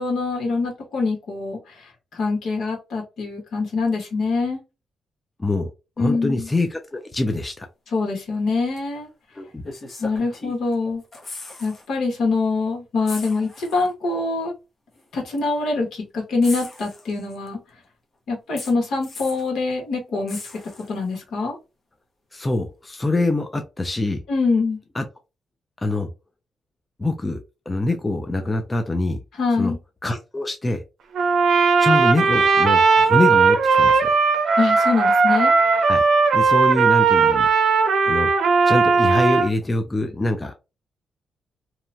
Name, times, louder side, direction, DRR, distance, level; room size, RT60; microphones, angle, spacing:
voice 1, 0.0-4.6 6.0-6.5 7.9-9.1 10.0-11.0 11.6-14.5 15.1-17.6 18.3-20.4 20.9-21.6 24.3-24.8 29.4-29.8 34.6-35.5, left 3 dB, 75° left, 1.3 m, -24 dB
voice 2, 6.0-7.7 9.4-9.6 22.3-24.2 25.0-25.1 25.8-26.1 27.0-29.2 29.6-29.7 30.0-30.8 31.8-34.1 35.9-36.0 36.3-37.5 38.0-38.3 38.7-40.5, left 2 dB, 15° left, 0.3 m, -24 dB
sound 1, 8.8-8.9 9.6-10.7 11.0-11.9 12.2-12.3 13.0-13.9 14.9-15.0 16.4-17.5 18.6-19.5 20.3-21.2 22.9-23.0, left 3 dB, 35° left, 0.8 m, -38 dB
Trumpet, 31.1-39.5, right 4 dB, 65° right, 0.6 m, -17 dB
2.8 x 2.2 x 2.6 m
wide cardioid pair, 155°, 0 cm